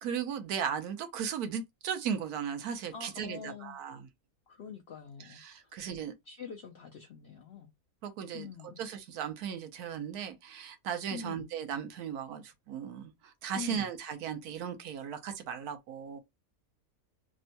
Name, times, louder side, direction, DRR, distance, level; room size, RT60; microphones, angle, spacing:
voice 1, 0.0-4.1 5.3-6.1 8.0-8.5 8.8-16.2, right 8 dB, 80° right, 1.2 m, -37 dB
voice 2, 2.9-3.8 4.5-5.7 6.3-7.7 8.3-8.8 11.1-11.5 13.5-13.9, left 7 dB, 75° left, 0.6 m, -45 dB
3.5 x 2.1 x 2.6 m
omnidirectional pair, 1.6 m